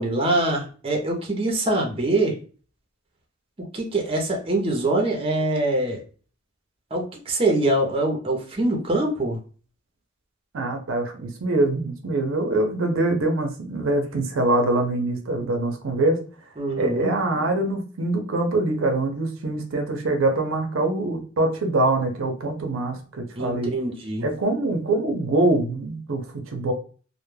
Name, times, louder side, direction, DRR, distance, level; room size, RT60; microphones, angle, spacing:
voice 1, 0.0-2.4 3.7-6.0 6.9-9.4 16.6-17.1 23.4-24.3, right 2 dB, 30° right, 1 dB, 0.6 m, -24 dB
voice 2, 10.5-16.2 16.7-23.7 24.2-26.7, right 2 dB, 75° right, 4 dB, 0.5 m, -24 dB
2.2 x 2.1 x 3.1 m, 0.39 s
head